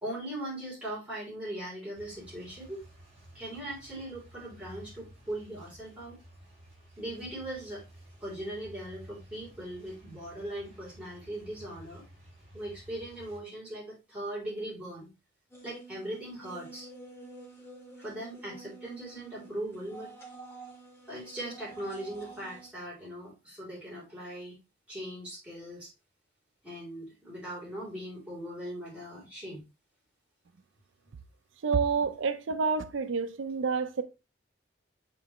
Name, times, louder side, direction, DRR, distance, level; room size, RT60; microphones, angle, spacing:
voice 1, 0.0-2.9 3.3-6.2 7.0-7.8 8.2-12.1 12.5-15.1 15.6-16.9 18.0-20.1 21.1-24.6 24.9-25.9 26.6-29.6, right 1 dB, 5° right, 3.5 m, -39 dB
sound 1, 1.9-13.4, equal, 30° right, 3.7 m, -53 dB
sound 2, 15.5-22.7, right 3 dB, 15° left, 1.8 m, -49 dB
voice 2, 31.6-34.0, right 5 dB, 85° right, 0.5 m, -28 dB
7.7 x 4.0 x 3.1 m
head